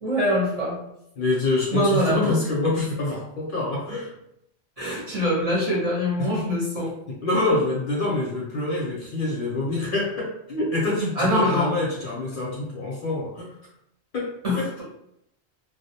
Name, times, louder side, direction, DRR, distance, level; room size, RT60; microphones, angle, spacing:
voice 1, 0.0-0.8 1.7-2.3 4.8-6.9 11.2-11.7 14.4-14.8, equal, 35° right, -6 dB, 0.8 m, -24 dB
voice 2, 1.2-4.1 6.2-6.5 7.1-13.5 14.1-14.7, left 2 dB, 60° left, -3 dB, 0.6 m, -26 dB
2.4 x 2.0 x 2.7 m, 0.77 s
omnidirectional pair, 1.1 m